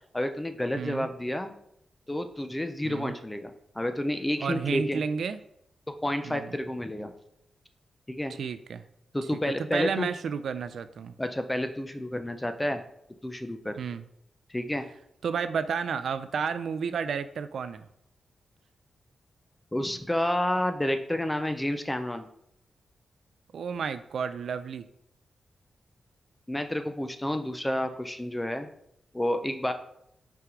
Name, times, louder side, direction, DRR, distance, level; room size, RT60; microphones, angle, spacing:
voice 1, 0.1-1.5 2.1-5.0 5.9-7.1 8.1-8.3 9.1-10.1 11.2-12.8 13.2-13.8 14.5-14.9 19.7-22.3 26.5-28.7 29.1-29.7, left 1 dB, 10° left, 8 dB, 0.5 m, -30 dB
voice 2, 0.7-1.1 2.8-3.1 4.4-5.4 6.2-6.5 8.4-8.8 9.7-11.1 13.8-14.0 15.2-17.8 23.5-24.9, right 6 dB, 65° right, 11 dB, 0.4 m, -31 dB
5.9 x 4.6 x 3.7 m, 0.75 s
wide cardioid pair, 155°, 0 cm